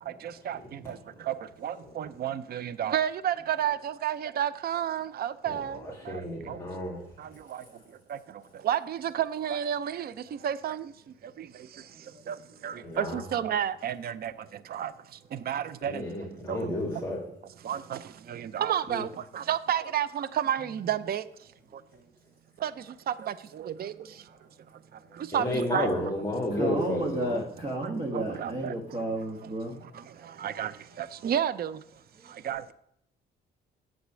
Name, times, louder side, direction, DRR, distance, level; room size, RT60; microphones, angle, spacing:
voice 1, 1.6-5.8 6.5-6.6 8.6-10.1 10.4-10.8 12.3-12.4 12.6-14.3 14.7-14.9 15.5-16.0 16.5-16.6 17.7-18.0 18.3-19.1 19.3-21.2 22.6-22.7 23.1-23.3 23.6-23.9 25.3-25.9 28.1-28.7 30.4-30.7 31.0-31.7 32.4-32.6, right 10 dB, 50° right, 0.5 m, -30 dB
voice 2, 6.1-7.0 12.8-13.2 15.8-17.2 25.3-27.4, left 1 dB, 10° left, 2.3 m, -31 dB
voice 3, 26.5-29.7, right 1 dB, 35° right, 1.7 m, -32 dB
8.3 x 7.8 x 6.1 m
cardioid pair, 90°, 20 cm